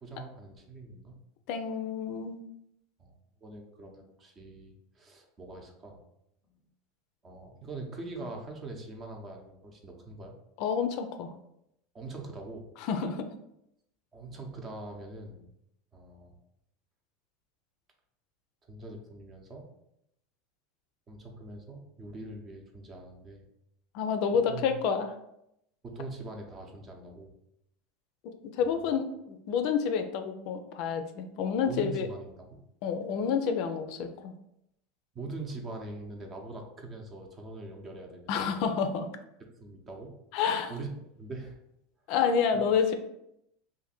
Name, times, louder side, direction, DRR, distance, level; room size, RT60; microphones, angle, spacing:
voice 1, 0.0-1.2 3.0-3.1 3.4-6.0 7.2-10.3 11.9-12.7 14.1-15.4 15.9-16.4 18.7-19.7 21.1-23.4 24.5-24.7 25.8-27.3 28.6-28.8 31.7-32.6 35.1-38.4 39.4-40.2 40.7-41.6 42.5-42.6, right 2 dB, 30° right, 2 dB, 0.7 m, -43 dB
voice 2, 1.5-2.4 10.6-11.3 12.8-13.3 23.9-25.1 28.2-32.1 32.8-34.3 38.3-39.1 40.3-40.7 42.1-42.9, left 6 dB, 60° left, 7 dB, 0.4 m, -29 dB
2.6 x 2.5 x 4.1 m, 0.79 s
supercardioid pair, 110°, 0 cm